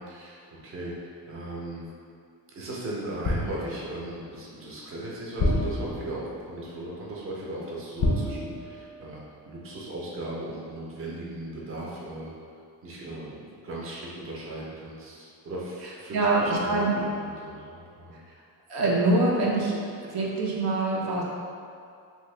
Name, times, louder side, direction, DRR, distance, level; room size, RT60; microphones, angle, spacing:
voice 1, 0.0-1.9 2.5-12.3 12.8-18.2, right 1 dB, 35° right, -5 dB, 0.6 m, -37 dB
sound 1, 3.2-4.0 5.4-6.4 8.0-9.1 9.4-9.6, left 1 dB, 35° left, 0.5 m, -28 dB
voice 2, 16.1-17.0 18.7-19.8 20.0-21.2, right 2 dB, 70° right, -4 dB, 0.7 m, -24 dB
2.8 x 2.8 x 3.2 m, 2.4 s
cardioid pair, 130°, 41 cm